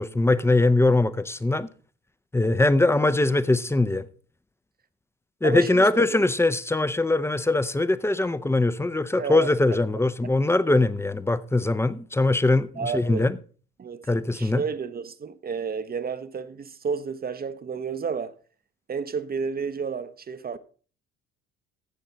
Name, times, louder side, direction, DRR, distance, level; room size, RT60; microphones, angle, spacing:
voice 1, 0.0-1.7 2.3-4.0 5.4-13.4 14.1-14.6, left 2 dB, 10° left, 0.6 m, -22 dB
voice 2, 5.4-6.1 9.2-9.5 12.8-13.3 13.8-14.0 14.3-18.3 18.9-20.6, right 6 dB, 30° right, 0.8 m, -31 dB
13.0 x 7.7 x 3.9 m
hypercardioid pair, 55°, 32 cm